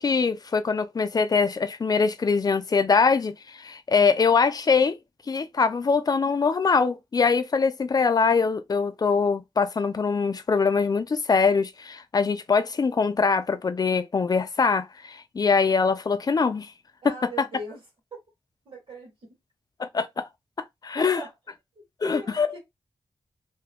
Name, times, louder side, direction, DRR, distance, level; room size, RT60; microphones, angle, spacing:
voice 1, 0.0-5.0 5.3-16.7 17.0-17.5 19.8-20.2 20.8-21.2 22.0-22.5, left 5 dB, 45° left, 0.5 m, -23 dB
voice 2, 17.0-17.8 18.7-19.1 21.0-21.3 22.0-22.6, right 1 dB, 70° right, 1.3 m, -38 dB
2.7 x 2.4 x 3.4 m
wide cardioid pair, 100°, 9 cm